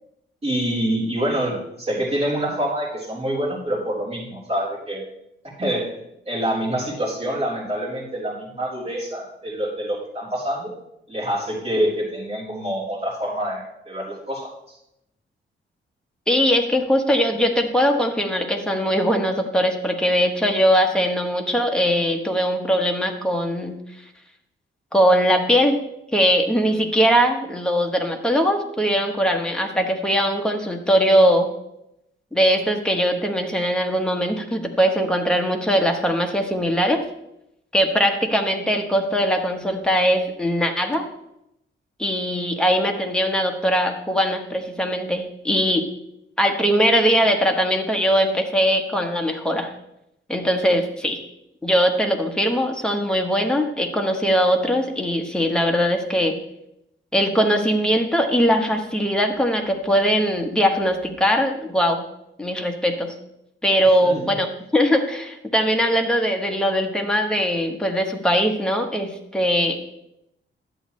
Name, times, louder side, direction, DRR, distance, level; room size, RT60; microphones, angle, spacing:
voice 1, 0.4-5.0 5.4-5.9 6.3-10.7 11.1-14.5 64.0-64.4, equal, 30° right, -7 dB, 3.7 m, -26 dB
voice 2, 16.3-23.8 24.9-25.8 26.1-31.5 32.3-37.0 37.7-41.1 42.0-45.9 46.4-49.7 50.3-51.2 51.6-56.4 57.1-62.0 62.4-63.1 63.6-69.9, equal, 5° left, 3 dB, 1.0 m, -21 dB
11.0 x 7.9 x 3.1 m, 0.82 s
wide cardioid pair, 130°, 21 cm